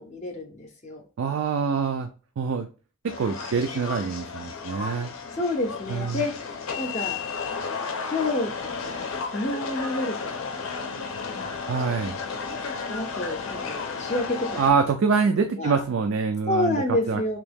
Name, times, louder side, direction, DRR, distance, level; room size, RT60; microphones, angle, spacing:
voice 1, 0.0-1.0 5.3-6.5 6.8-7.2 8.0-11.0 11.3-11.6 12.9-14.7 15.6-15.8 16.5-17.4, left 2 dB, 35° left, 3 dB, 0.5 m, -29 dB
voice 2, 1.2-2.1 2.4-2.7 3.0-5.1 5.9-6.2 11.7-12.2 14.6-17.4, right 5 dB, 70° right, 6 dB, 0.3 m, -25 dB
sound 1, 3.1-14.7, left 5 dB, 85° left, 0.5 m, -33 dB
2.9 x 2.7 x 3.5 m, 0.36 s
head